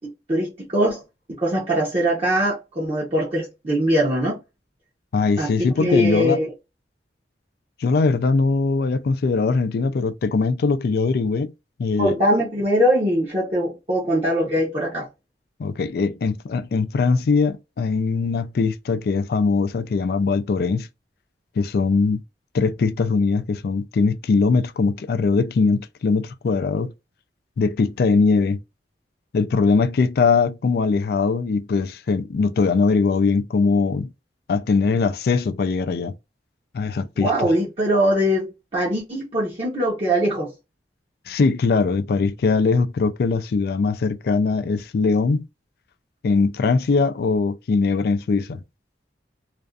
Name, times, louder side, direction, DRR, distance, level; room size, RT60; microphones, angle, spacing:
voice 1, 0.0-1.0 1.3-4.4 5.4-6.5 12.0-15.1 37.2-40.5, equal, 35° right, 0.8 m, -22 dB
voice 2, 5.1-6.4 7.8-11.5 11.8-12.1 15.6-20.9 21.6-22.2 22.5-26.9 27.6-28.6 29.3-34.1 34.5-36.1 36.7-37.5 41.3-45.5 46.2-48.6, left 4 dB, 55° left, 0.3 m, -21 dB
2.4 x 2.3 x 2.3 m
head